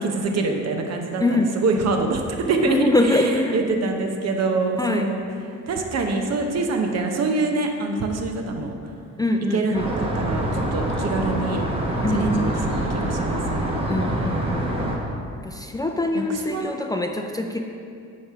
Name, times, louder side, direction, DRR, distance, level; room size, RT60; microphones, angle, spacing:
voice 1, 0.0-5.2 5.7-8.7 9.5-11.6 12.1-13.8 14.1-14.7 16.3-16.6, right 3 dB, 55° right, 3 dB, 0.9 m, -25 dB
voice 2, 2.7-3.6 4.8-5.1 9.2-9.9 12.0-12.3 13.9-14.9 15.4-17.6, left 2 dB, 15° left, 3 dB, 0.4 m, -23 dB
sound 1, 9.7-15.0, right 1 dB, 20° right, 1.2 m, -25 dB
9.4 x 3.3 x 5.6 m, 2.4 s
cardioid pair, 90°, 30 cm